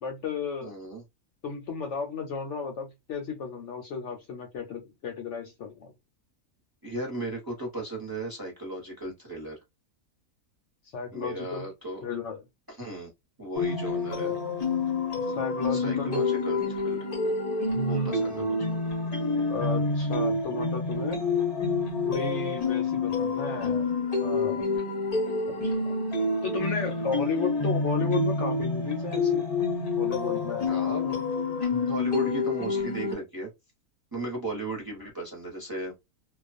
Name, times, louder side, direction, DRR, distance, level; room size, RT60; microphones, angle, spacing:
voice 1, 0.0-0.7 1.4-5.9 10.9-11.6 12.0-12.4 15.4-16.2 17.7-18.5 19.5-21.2 22.0-23.9 24.2-24.6 25.5-25.9 26.4-29.4 30.0-30.7, left 5 dB, 65° left, 0.8 m, -33 dB
voice 2, 0.6-1.0 6.8-9.6 11.1-12.1 12.7-13.1 13.4-14.3 15.6-17.1 17.7-18.6 30.6-31.3 31.6-33.5 34.1-35.9, right 2 dB, 20° right, 0.7 m, -36 dB
sound 1, 13.5-33.1, left 3 dB, 40° left, 0.6 m, -28 dB
2.4 x 2.2 x 2.5 m
omnidirectional pair, 1.5 m